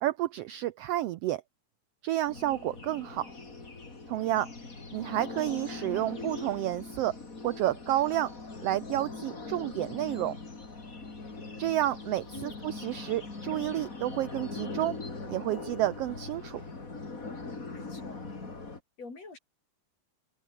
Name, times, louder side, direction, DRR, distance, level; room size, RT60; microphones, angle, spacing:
voice 1, 0.0-1.4 2.0-3.3 4.1-4.5 4.9-7.2 7.4-8.3 8.6-10.4 11.6-15.0 15.3-16.6, right 14 dB, 75° right, 1.4 m, -30 dB
sound 1, 2.3-18.8, left 3 dB, 25° left, 3.7 m, -41 dB
voice 2, 12.3-12.7 17.7-18.2 19.0-19.4, left 3 dB, 60° left, 7.4 m, -45 dB
open air
omnidirectional pair, 3.4 m